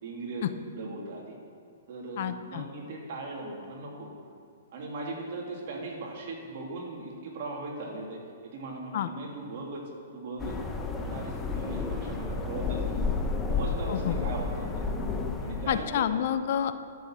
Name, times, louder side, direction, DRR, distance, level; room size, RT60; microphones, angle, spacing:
voice 1, 0.0-1.4 1.9-4.1 4.7-9.8 10.1-10.6 10.9-13.0 13.5-14.9 15.4-16.1, right 2 dB, 55° right, -1 dB, 3.1 m, -38 dB
voice 2, 2.2-2.7 8.9-9.1 13.9-14.2 15.7-16.7, left 10 dB, 55° left, 11 dB, 0.7 m, -28 dB
sound 1, 10.4-15.9, left 4 dB, 15° left, 1.0 m, -31 dB
12.0 x 7.1 x 7.5 m, 2.2 s
hypercardioid pair, 135°, 0 cm